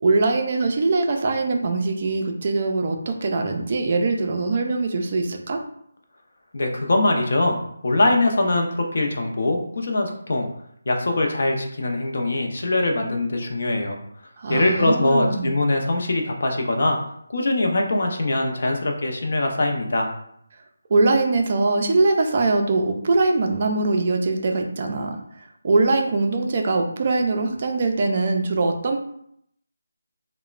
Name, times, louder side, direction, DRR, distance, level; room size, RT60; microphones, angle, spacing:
voice 1, 0.0-5.6 14.4-15.5 20.9-25.2 25.6-29.0, right 3 dB, 35° right, 3 dB, 0.3 m, -22 dB
voice 2, 6.5-7.6 7.8-10.5 10.9-14.0 14.5-17.0 17.3-20.1, left 2 dB, 60° left, 2 dB, 0.5 m, -22 dB
2.9 x 2.0 x 2.4 m, 0.71 s
figure-of-eight pair, 170°, 0 cm